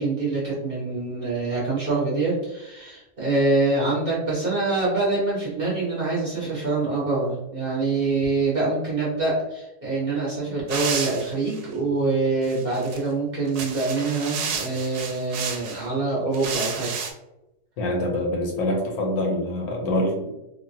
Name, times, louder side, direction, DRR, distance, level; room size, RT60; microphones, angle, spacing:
voice 1, 0.0-17.0, right 3 dB, 50° right, -6 dB, 0.7 m, -25 dB
sound 1, 10.7-11.7 12.4-13.0 13.5-15.8 16.3-17.1, right 6 dB, 75° right, 1.0 m, -31 dB
voice 2, 17.8-20.3, left 1 dB, 70° left, 0 dB, 1.0 m, -25 dB
3.2 x 2.1 x 2.6 m, 0.94 s
omnidirectional pair, 1.8 m